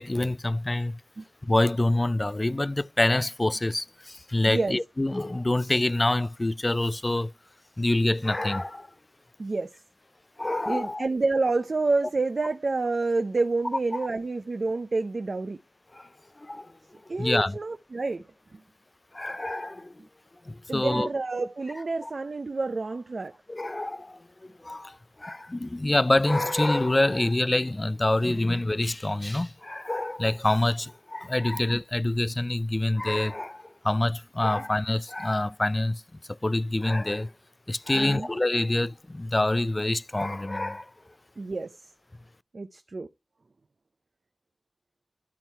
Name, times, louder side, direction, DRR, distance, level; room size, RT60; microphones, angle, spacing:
voice 1, 0.0-1.0 1.4-7.3 7.8-8.9 10.4-11.1 15.9-16.1 16.4-16.7 17.2-17.6 19.1-19.9 20.5-21.1 22.0-22.1 23.5-36.0 36.3-37.3 37.7-40.9, left 2 dB, 35° left, 0.4 m, -26 dB
voice 2, 4.5-4.8 9.4-9.7 10.7-15.6 17.1-18.3 18.5-18.6 20.7-23.4 34.5-34.6 37.9-38.3 41.4-41.8 42.5-43.1, right 3 dB, 70° right, 0.6 m, -28 dB
12.5 x 4.5 x 4.6 m
cardioid pair, 40°, 0 cm